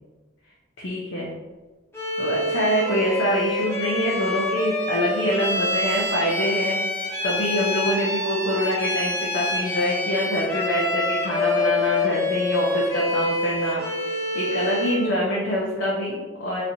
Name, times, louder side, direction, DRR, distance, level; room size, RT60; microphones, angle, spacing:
voice 1, 0.8-1.3 2.2-16.6, equal, 90° left, -5 dB, 0.8 m, -25 dB
Bowed string instrument, 1.9-15.1, left 2 dB, 15° left, 0.7 m, -26 dB
4.2 x 3.2 x 2.7 m, 1.3 s
head